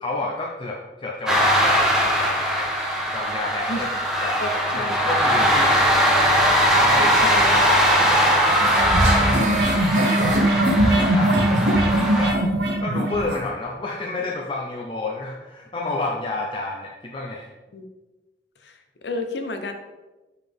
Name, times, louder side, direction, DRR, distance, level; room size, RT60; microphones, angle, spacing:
voice 1, 0.0-2.7 3.1-3.9 4.2-6.2 6.9-7.4 9.2-10.4 10.9-12.4 12.8-17.5, left 2 dB, 30° left, -2 dB, 0.6 m, -30 dB
sound 1, 1.3-12.3, equal, 5° right, 1.0 m, -20 dB
voice 2, 3.6-4.0 4.4-5.0 5.4-5.7 7.2-7.6 17.7-17.8 18.6-19.7, left 1 dB, 70° left, 6 dB, 0.8 m, -31 dB
sound 2, 8.5-13.4, right 1 dB, 70° right, 1.1 m, -20 dB
sound 3, 9.4-10.8, right 4 dB, 45° right, 0.4 m, -31 dB
6.0 x 5.6 x 3.6 m, 1.1 s
head